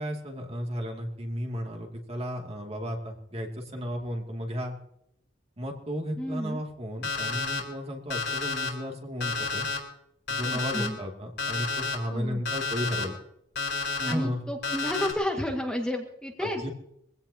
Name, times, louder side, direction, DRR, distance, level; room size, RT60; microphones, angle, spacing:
voice 1, 0.0-4.8 5.6-9.7 10.3-13.2 14.0-14.4 16.4-16.7, equal, 30° right, 2 dB, 2.4 m, -34 dB
voice 2, 6.2-6.6 10.5-11.0 12.1-12.4 14.1-16.6, left 1 dB, 5° left, 1 dB, 1.7 m, -31 dB
Alarm, 7.0-7.6 8.1-8.7 9.2-9.8 10.3-10.9 11.4-12.0 12.5-13.0 13.6-14.1 14.6-15.1, left 4 dB, 60° left, 4.1 m, -30 dB
23.0 x 16.5 x 2.8 m, 0.76 s
head